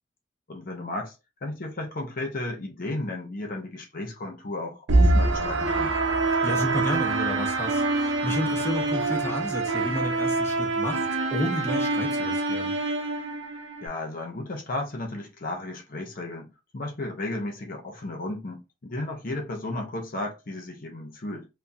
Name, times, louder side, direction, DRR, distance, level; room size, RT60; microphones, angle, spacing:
voice 1, 0.5-1.1 1.4-5.9 13.8-21.5, left 2 dB, 50° left, 0.8 m, -34 dB
sound 1, 4.9-13.9, right 2 dB, 75° right, 0.7 m, -25 dB
voice 2, 6.4-12.7, equal, 15° left, 0.8 m, -31 dB
3.5 x 2.2 x 2.6 m
head